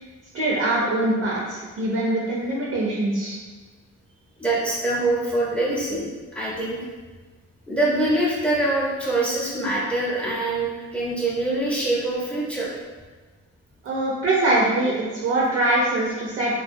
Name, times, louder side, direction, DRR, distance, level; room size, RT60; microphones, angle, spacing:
voice 1, 0.3-3.4 13.8-16.5, right 2 dB, 50° right, -5 dB, 0.6 m, -23 dB
voice 2, 4.4-6.0 6.3-6.8 7.7-12.7, right 2 dB, 5° left, -6 dB, 0.7 m, -24 dB
2.3 x 2.2 x 2.6 m, 1.3 s
cardioid pair, 90°, 30 cm